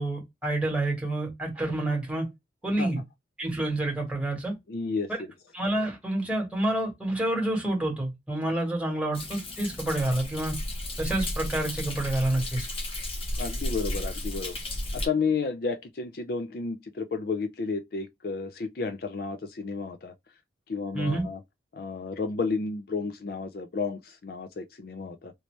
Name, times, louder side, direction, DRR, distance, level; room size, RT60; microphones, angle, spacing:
voice 1, 0.0-2.3 2.6-3.0 3.4-4.5 5.5-10.6 11.0-12.7 20.9-21.2, right 1 dB, 5° right, 1.4 m, -28 dB
voice 2, 4.7-5.1 13.4-14.6 14.9-20.1 20.7-21.4 21.7-25.3, left 4 dB, 55° left, 0.4 m, -32 dB
Thunder, 9.1-15.1, left 1 dB, 30° left, 0.8 m, -33 dB
3.1 x 2.8 x 3.1 m
head